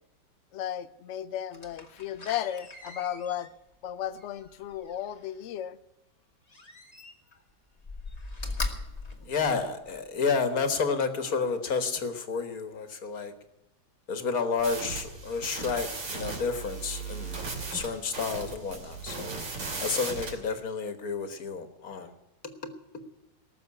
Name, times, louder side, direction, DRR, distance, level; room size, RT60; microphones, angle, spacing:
voice 1, 0.5-3.5 3.8-5.8, left 10 dB, 85° left, 13 dB, 0.6 m, -34 dB
Slam, 1.5-5.4 6.5-7.4 7.8-10.1 10.6-10.7, left 3 dB, 20° left, 1.5 m, -40 dB
voice 2, 9.2-13.3 14.1-17.4 17.7-22.1 22.6-23.0, left 5 dB, 50° left, 8 dB, 1.9 m, -31 dB
sound 1, 14.6-20.4, right 4 dB, 65° right, 3.5 m, -37 dB
19.0 x 7.1 x 9.7 m, 0.96 s
omnidirectional pair, 2.1 m